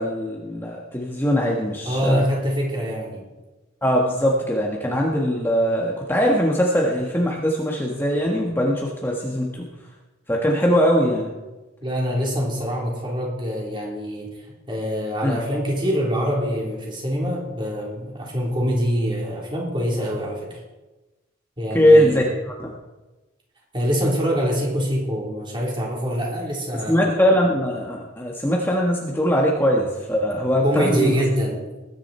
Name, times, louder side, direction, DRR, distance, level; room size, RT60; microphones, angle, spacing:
voice 1, 0.0-2.2 3.8-9.7 10.3-11.3 15.2-15.4 21.7-22.7 26.9-31.2, equal, 10° left, -2 dB, 1.4 m, -21 dB
voice 2, 1.9-3.3 11.8-14.3 14.7-20.6 21.6-22.2 23.7-27.0 30.6-31.6, equal, 25° right, -2 dB, 3.8 m, -24 dB
20.5 x 10.0 x 4.4 m, 1.1 s
head